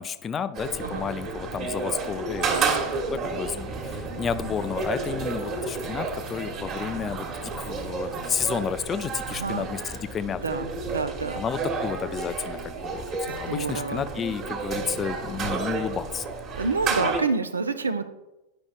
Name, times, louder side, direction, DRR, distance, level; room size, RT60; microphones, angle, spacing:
voice 1, 0.0-2.7 3.1-10.6 11.4-16.3, left 7 dB, 25° left, 12 dB, 0.4 m, -31 dB
sound 1, 0.5-17.2, right 4 dB, 30° right, 1.4 m, -31 dB
voice 2, 2.5-2.8 9.2-9.7 10.4-11.4 13.3-14.0 16.5-18.1, right 4 dB, 75° right, 11 dB, 0.4 m, -28 dB
10.0 x 5.2 x 2.4 m, 0.96 s
figure-of-eight pair, 90°, 0 cm